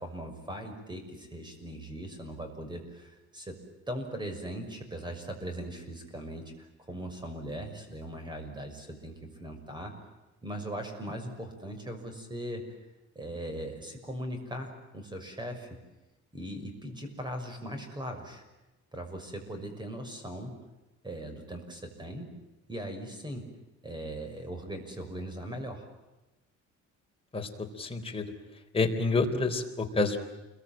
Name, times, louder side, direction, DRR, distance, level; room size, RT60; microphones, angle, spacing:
voice 1, 0.0-3.6 3.9-9.9 10.4-12.6 13.1-15.8 16.3-18.4 18.9-20.6 21.0-22.3 22.7-23.5 23.8-25.9, right 1 dB, 15° right, 6 dB, 6.2 m, -39 dB
voice 2, 27.3-28.3 28.7-30.2, left 3 dB, 20° left, 2 dB, 3.9 m, -28 dB
29.0 x 22.5 x 9.0 m, 1.0 s
cardioid pair, 145°, 30 cm